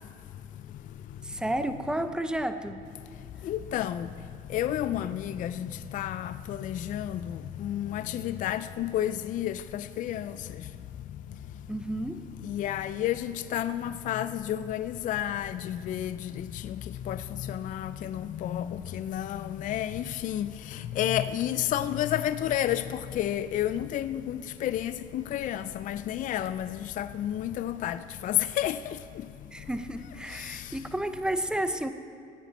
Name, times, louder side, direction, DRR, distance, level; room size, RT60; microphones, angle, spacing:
voice 1, 1.2-2.8 11.7-12.2 29.5-31.9, right 1 dB, 5° right, 9 dB, 0.6 m, -31 dB
voice 2, 3.5-4.1 4.5-5.7 5.9-7.2 7.6-10.3 12.4-16.2 17.1-17.2 17.5-20.5 21.0-28.0 28.2-28.8, left 11 dB, 50° left, 13 dB, 0.4 m, -30 dB
16.5 x 8.9 x 4.1 m, 2.6 s
cardioid pair, 110°, 17 cm